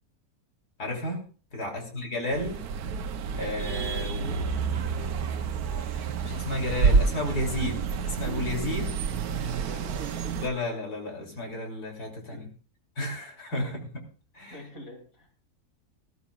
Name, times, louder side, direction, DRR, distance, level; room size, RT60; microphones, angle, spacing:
voice 1, 0.8-1.2 1.5-2.6 3.3-4.4 5.9-8.9 10.4-12.5 13.0-13.8 14.3-14.6, left 2 dB, 85° left, 1 dB, 3.5 m, -32 dB
voice 2, 1.6-2.1 4.1-5.2 8.8-10.5 12.3-12.5 13.6-13.8 14.5-15.3, left 1 dB, 60° left, 1 dB, 3.3 m, -47 dB
sound 1, 2.3-10.5, right 5 dB, 75° right, 1.3 m, -28 dB
19.0 x 13.5 x 2.4 m, 0.39 s
omnidirectional pair, 1.6 m